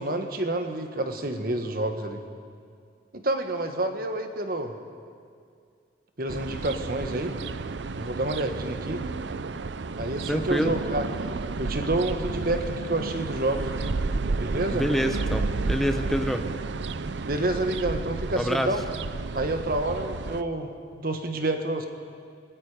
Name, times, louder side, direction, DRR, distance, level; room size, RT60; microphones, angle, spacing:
voice 1, 0.0-2.2 3.1-4.7 6.2-7.4 7.9-9.1 9.9-14.0 14.4-14.9 17.3-18.8 19.3-21.9, right 2 dB, 50° right, 6 dB, 1.6 m, -29 dB
sound 1, 6.3-20.4, right 3 dB, 75° right, 0.6 m, -32 dB
voice 2, 10.2-10.7 14.7-16.5 18.4-18.7, equal, ahead, 6 dB, 0.9 m, -26 dB
26.5 x 19.5 x 5.1 m, 2.2 s
head